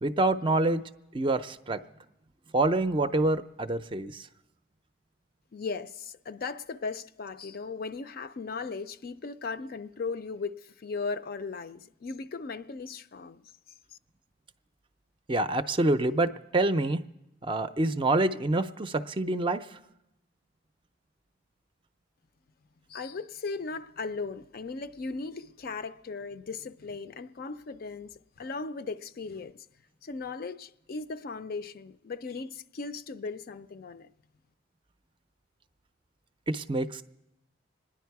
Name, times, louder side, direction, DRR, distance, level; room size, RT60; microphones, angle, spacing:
voice 1, 0.0-0.9 1.1-1.8 2.5-4.3 15.3-17.1 17.4-19.6 36.5-37.0, right 2 dB, 25° right, 0.4 m, -26 dB
voice 2, 5.5-13.5 22.9-29.7 30.0-34.1, left 4 dB, 50° left, 0.4 m, -37 dB
26.0 x 10.0 x 4.7 m
head